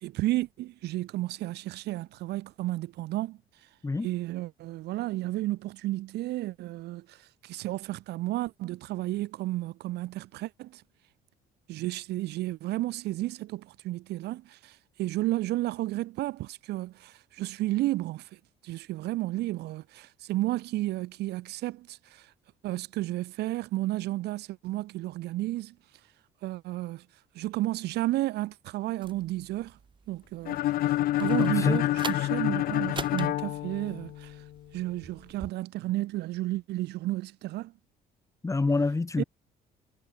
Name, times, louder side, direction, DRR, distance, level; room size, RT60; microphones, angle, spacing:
voice 1, 0.0-3.4 4.0-10.8 11.7-18.3 18.6-22.3 22.6-25.7 26.4-27.0 27.3-29.8 30.1-34.4 34.7-37.7 39.2-39.3, right 17 dB, 75° right, 1.6 m, -32 dB
sound 1, 29.0-35.5, right 5 dB, 30° right, 3.7 m, -44 dB
sound 2, 30.5-34.4, left 14 dB, 60° left, 0.5 m, -27 dB
voice 2, 31.4-31.8 38.4-39.2, left 3 dB, 20° left, 3.2 m, -27 dB
cardioid pair, 110°, 17 cm